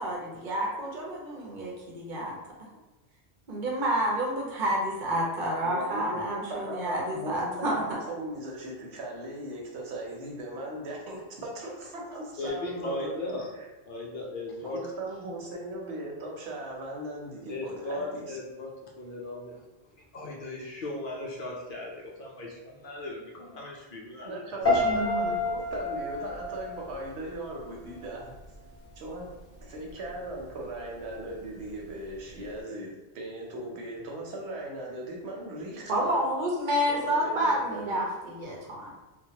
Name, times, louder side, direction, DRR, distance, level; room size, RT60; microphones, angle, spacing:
voice 1, 0.0-2.4 3.5-7.8 24.8-25.4 35.9-38.9, equal, 55° right, -2 dB, 0.8 m, -29 dB
voice 2, 5.6-13.2 13.5-13.7 14.7-18.4 24.2-28.3 29.0-29.3 29.7-36.2 36.9-38.0, right 1 dB, 80° right, -1 dB, 1.0 m, -38 dB
voice 3, 12.4-13.5 13.9-14.8 17.5-18.7 19.0-19.6 20.0-24.3, left 2 dB, 60° left, -2 dB, 0.7 m, -37 dB
Piano, 24.6-27.7 28.0-28.5, left 2 dB, 15° left, 1.0 m, -29 dB
3.0 x 2.2 x 2.8 m, 1.1 s
omnidirectional pair, 1.1 m